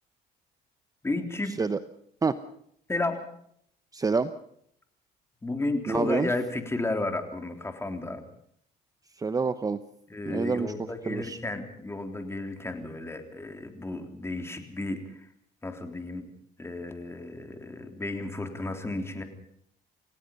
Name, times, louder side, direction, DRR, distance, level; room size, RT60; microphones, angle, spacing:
voice 1, 1.0-1.6 2.9-3.2 5.4-8.2 10.1-15.3 15.6-16.3 16.6-19.2, left 2 dB, 15° left, 5 dB, 3.6 m, -33 dB
voice 2, 3.9-4.3 5.9-6.3 9.2-9.8 10.3-10.7 11.1-11.4, right 4 dB, 20° right, 11 dB, 0.9 m, -27 dB
28.5 x 17.0 x 5.5 m, 0.67 s
cardioid pair, 110°, 17 cm